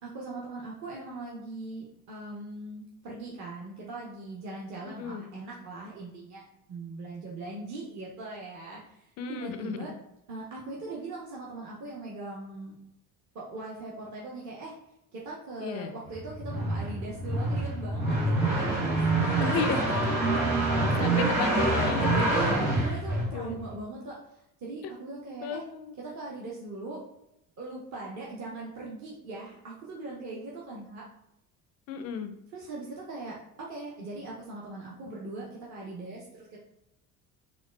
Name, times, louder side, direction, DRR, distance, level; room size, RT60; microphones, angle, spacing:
voice 1, 0.0-9.9 10.3-12.8 13.3-14.7 15.1-18.2 18.4-20.7 22.3-25.6 26.0-27.0 27.6-31.1 32.5-36.6, right 2 dB, 35° right, -4 dB, 0.9 m, -40 dB
voice 2, 4.8-5.3 9.2-9.9 15.6-15.9 19.4-19.8 21.0-22.3 23.3-23.6 24.8-24.9 25.4-26.0 31.9-32.3, left 6 dB, 35° left, 7 dB, 0.4 m, -33 dB
sound 1, 16.1-23.7, right 2 dB, 90° right, 0.9 m, -26 dB
3.9 x 2.4 x 2.2 m, 0.81 s
figure-of-eight pair, 55°, 48 cm